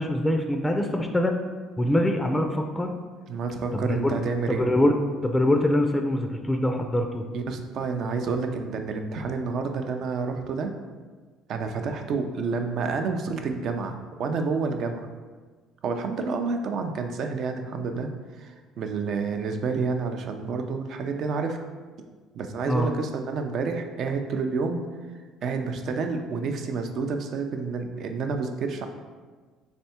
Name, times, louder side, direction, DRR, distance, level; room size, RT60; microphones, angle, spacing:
voice 1, 0.0-1.4 1.8-2.9 3.7-4.1 4.5-4.9 5.2-7.2 22.6-22.9, left 1 dB, 10° left, 4 dB, 0.4 m, -24 dB
voice 2, 3.3-4.7 7.3-10.7 11.5-15.1 15.8-18.1 18.4-21.6 22.4-24.8 25.4-28.9, right 4 dB, 60° right, 5 dB, 0.5 m, -29 dB
3.5 x 3.3 x 4.3 m, 1.4 s
supercardioid pair, 95°, 0 cm